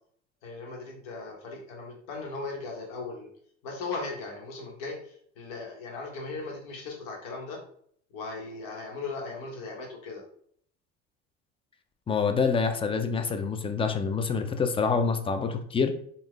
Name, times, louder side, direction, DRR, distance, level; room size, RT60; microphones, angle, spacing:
voice 1, 0.4-3.3 3.6-7.6 8.1-10.2, left 3 dB, 65° left, 0 dB, 1.4 m, -38 dB
voice 2, 12.1-15.9, left 5 dB, 15° left, 7 dB, 0.4 m, -26 dB
3.6 x 2.6 x 3.3 m, 0.62 s
hypercardioid pair, 70°, 35 cm